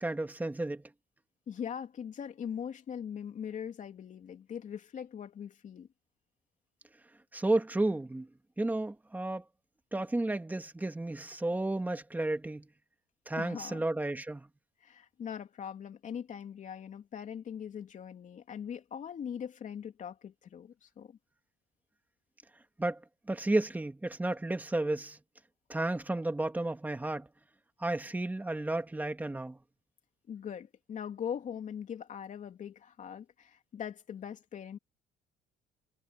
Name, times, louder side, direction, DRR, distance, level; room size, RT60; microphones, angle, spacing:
voice 1, 0.0-0.8 7.3-8.3 8.6-9.4 9.9-12.7 13.3-14.5 22.8-23.0 23.3-25.2 25.7-27.3 27.8-29.6, right 2 dB, 10° right, 1.9 m, -32 dB
voice 2, 1.5-5.9 13.4-13.8 14.8-21.2 30.3-34.8, left 8 dB, 50° left, 3.1 m, -41 dB
cardioid pair, 110°, 17 cm